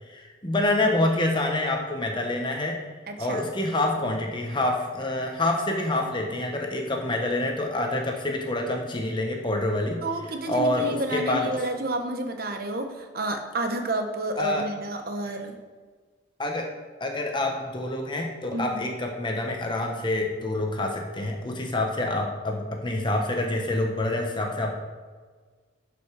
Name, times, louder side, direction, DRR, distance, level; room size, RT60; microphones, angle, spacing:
voice 1, 0.1-2.8 3.2-10.0 10.5-11.6 14.4-14.7 16.4-16.7 17.0-24.7, left 2 dB, 25° left, 2 dB, 1.1 m, -27 dB
voice 2, 3.1-3.4 10.0-15.6 18.5-18.9, right 2 dB, 50° right, 5 dB, 1.1 m, -30 dB
11.5 x 5.3 x 4.7 m, 1.5 s
head